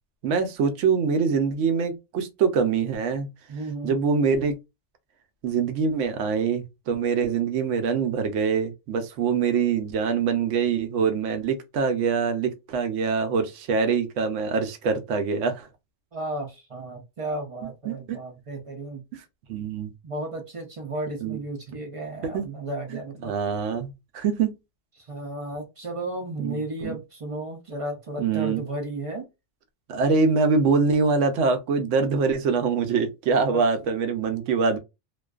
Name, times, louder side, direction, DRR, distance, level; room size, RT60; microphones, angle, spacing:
voice 1, 0.2-3.3 3.8-4.6 5.4-15.7 17.8-18.2 19.1-19.2 19.5-19.9 21.2-21.4 21.7-21.8 22.3-22.4 22.9-24.6 26.4-27.0 28.2-28.6 29.9-34.8, right 5 dB, 80° right, 0.9 m, -24 dB
voice 2, 3.5-4.0 16.1-19.0 20.0-23.3 25.0-29.3 33.5-33.6, right 2 dB, 50° right, 0.4 m, -34 dB
2.4 x 2.3 x 2.3 m
omnidirectional pair, 1.3 m